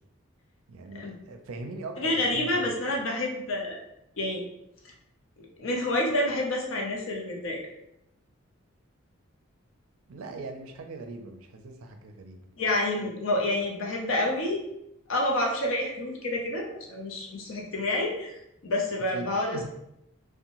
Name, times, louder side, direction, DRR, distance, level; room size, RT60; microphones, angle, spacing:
voice 1, 0.7-2.6 10.1-12.4 19.1-19.7, right 2 dB, 85° right, 5 dB, 0.4 m, -40 dB
voice 2, 2.0-3.8 4.2-4.4 5.4-7.6 12.6-14.6 15.1-18.3 18.6-19.7, left 1 dB, 70° left, -1 dB, 0.6 m, -28 dB
2.6 x 2.1 x 2.9 m, 0.83 s
head